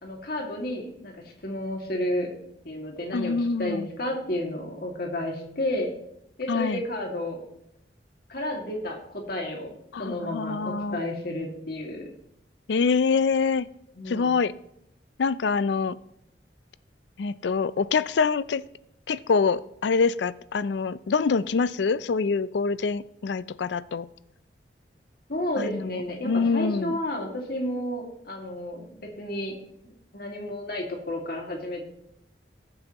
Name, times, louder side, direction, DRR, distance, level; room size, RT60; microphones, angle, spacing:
voice 1, 0.0-1.1 1.4-2.3 2.6-5.9 6.4-7.4 8.3-9.7 10.0-12.1 14.0-14.3 25.3-29.5 30.1-31.9, left 1 dB, 60° left, 0 dB, 2.2 m, -31 dB
voice 2, 3.1-3.9 6.5-6.8 9.9-11.0 12.7-13.7 14.1-14.5 15.2-16.0 17.2-18.6 19.1-24.1 25.6-27.0, left 5 dB, 75° left, 17 dB, 0.4 m, -25 dB
19.5 x 7.8 x 3.0 m, 0.77 s
head